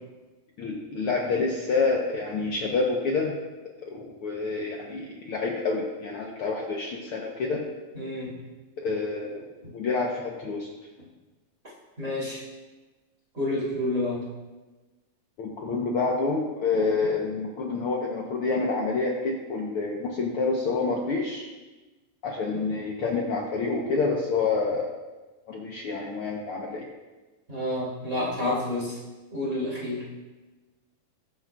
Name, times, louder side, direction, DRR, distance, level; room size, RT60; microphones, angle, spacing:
voice 1, 0.6-3.3 3.9-7.6 8.8-9.4 9.7-10.7 15.4-21.5 22.2-24.9 25.5-26.8, left 4 dB, 80° left, -1 dB, 1.2 m, -28 dB
voice 2, 7.9-8.3 12.0-12.4 13.3-14.2 16.7-16.9 27.5-29.0 29.3-30.0, left 1 dB, 20° right, -7 dB, 3.2 m, -29 dB
20.0 x 8.6 x 2.4 m, 1.2 s
omnidirectional pair, 4.0 m